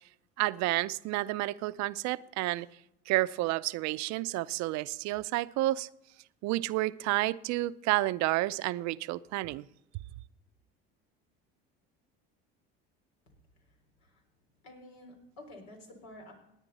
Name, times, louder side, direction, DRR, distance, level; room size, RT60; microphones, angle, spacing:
voice 1, 0.4-2.7 3.1-5.9 6.4-9.7, right 18 dB, 65° right, 0.6 m, -30 dB
voice 2, 14.6-16.3, left 1 dB, 80° left, 4.1 m, -50 dB
17.5 x 9.6 x 4.2 m
supercardioid pair, 90°, 30 cm